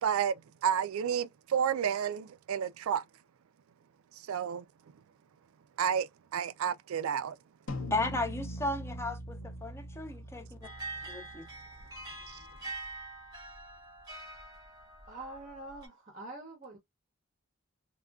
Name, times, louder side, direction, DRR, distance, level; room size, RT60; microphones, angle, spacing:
voice 1, 0.0-0.3 0.6-3.0 4.3-4.7 5.8-7.4 12.3-12.4, right 8 dB, 80° right, 0.3 m, -31 dB
sound 1, 7.7-12.3, equal, 70° left, 0.7 m, -42 dB
voice 2, 7.9-10.5 11.1-11.4, left 2 dB, 10° left, 0.6 m, -34 dB
sound 2, 10.6-15.9, right 2 dB, 20° right, 1.0 m, -45 dB
voice 3, 15.1-16.8, right 2 dB, 35° right, 0.7 m, -45 dB
3.5 x 2.2 x 2.3 m
head